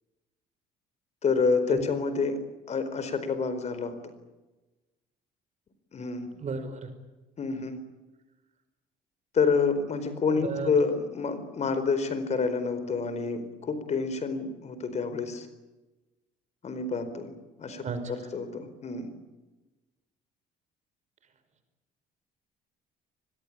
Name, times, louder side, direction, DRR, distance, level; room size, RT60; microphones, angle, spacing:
voice 1, 1.2-2.4 2.7-3.9 5.9-6.3 7.4-7.8 9.3-15.5 16.6-17.3 17.6-17.8 18.3-19.1, left 4 dB, 40° left, 11 dB, 4.5 m, -28 dB
voice 2, 6.3-6.9 10.3-10.7 17.7-18.3, right 4 dB, 45° right, 9 dB, 5.3 m, -35 dB
25.0 x 21.5 x 8.8 m, 1.1 s
cardioid pair, 110°, 17 cm